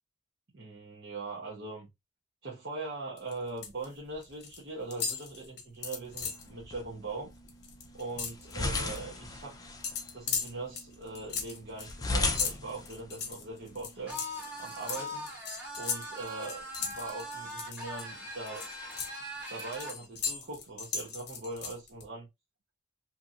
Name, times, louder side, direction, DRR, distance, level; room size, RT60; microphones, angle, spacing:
voice 1, 0.5-1.9 2.4-7.3 7.9-9.5 10.1-14.2 14.6-15.3 15.8-18.7 19.5-22.3, right 3 dB, 65° right, 0.9 m, -41 dB
sound 1, 3.2-3.8 4.1-4.6 4.9-6.5 6.9-7.1 7.4-9.0 9.8-18.0 18.5-22.0, left 6 dB, 60° left, 0.8 m, -37 dB
sound 2, 6.1-14.1, left 2 dB, 20° left, 0.4 m, -38 dB
sound 3, 14.1-20.0, equal, 10° right, 1.1 m, -41 dB
2.8 x 2.6 x 2.4 m
head